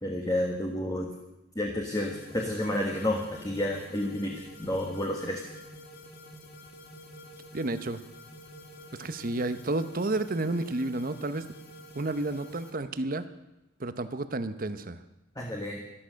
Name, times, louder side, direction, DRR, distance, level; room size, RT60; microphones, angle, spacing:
voice 1, 0.0-1.1 1.5-4.3 4.6-5.4 15.3-15.8, left 1 dB, 20° left, 0 dB, 1.6 m, -30 dB
sound 1, 1.9-12.7, left 1 dB, 55° left, 2.1 m, -48 dB
voice 2, 7.5-8.0 9.0-11.5 11.9-13.3 13.8-15.0, right 2 dB, 50° right, 11 dB, 0.9 m, -31 dB
13.0 x 13.0 x 6.4 m, 0.92 s
head